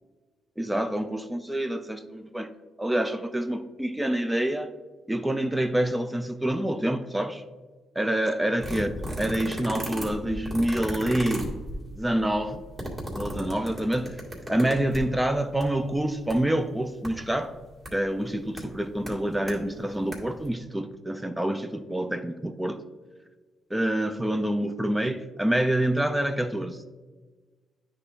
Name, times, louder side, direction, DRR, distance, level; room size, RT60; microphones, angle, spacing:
voice 1, 0.6-2.5 2.8-4.7 5.1-7.4 8.0-11.5 12.0-12.6 13.1-14.2 14.5-17.6 17.9-22.8 23.7-26.8, right 1 dB, 10° right, 0.4 m, -27 dB
sound 1, 8.6-15.2 15.6-15.7 15.9-16.3 17.0-17.1 17.8-17.9 18.6-18.7 19.1-19.5 20.0-20.1 20.4-20.5, equal, 25° right, 2.1 m, -34 dB
9.5 x 3.3 x 3.7 m
cardioid pair, 90°, 0 cm